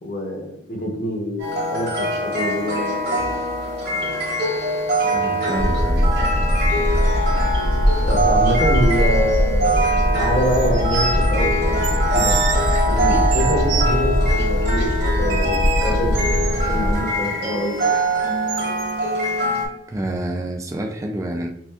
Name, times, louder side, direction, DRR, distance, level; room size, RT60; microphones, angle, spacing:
voice 1, 0.0-3.4 8.1-9.8 10.1-11.8 12.1-12.3 12.8-17.7, equal, 50° left, 0 dB, 1.0 m, -25 dB
sound 1, 1.4-19.6, equal, 60° right, 1.5 m, -23 dB
voice 2, 5.1-6.2 19.9-21.5, right 1 dB, 15° right, 3 dB, 0.3 m, -28 dB
sound 2, 5.6-16.9, equal, 80° left, 0.8 m, -21 dB
sound 3, 9.8-9.9 10.4-11.2 11.8-13.9 15.3-16.7 18.5-18.9, right 9 dB, 90° right, 0.4 m, -28 dB
5.8 x 2.5 x 2.4 m, 0.72 s
head